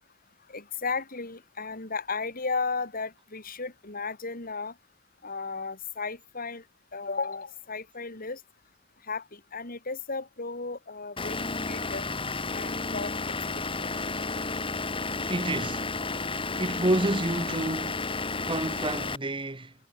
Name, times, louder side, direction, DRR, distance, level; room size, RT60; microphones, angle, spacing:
voice 1, 0.5-4.7 5.2-6.6 6.9-8.4 9.1-11.4 11.7-12.0 12.5-13.4 13.6-13.9, left 4 dB, 45° left, 4.4 m, -34 dB
Vehicle / Engine, 11.2-19.2, left 3 dB, 25° left, 2.9 m, -32 dB
voice 2, 15.3-15.9 16.6-18.1 18.4-19.7, right 1 dB, 25° right, 1.5 m, -29 dB
head